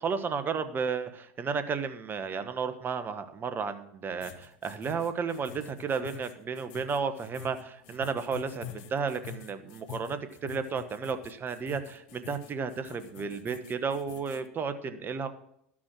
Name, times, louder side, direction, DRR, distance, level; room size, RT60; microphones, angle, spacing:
voice 1, 0.0-15.3, right 5 dB, 30° right, 10 dB, 1.2 m, -33 dB
sound 1, 4.2-14.5, left 8 dB, 60° left, 1.0 m, -46 dB
13.0 x 6.2 x 6.1 m, 0.73 s
hypercardioid pair, 90°, 7 cm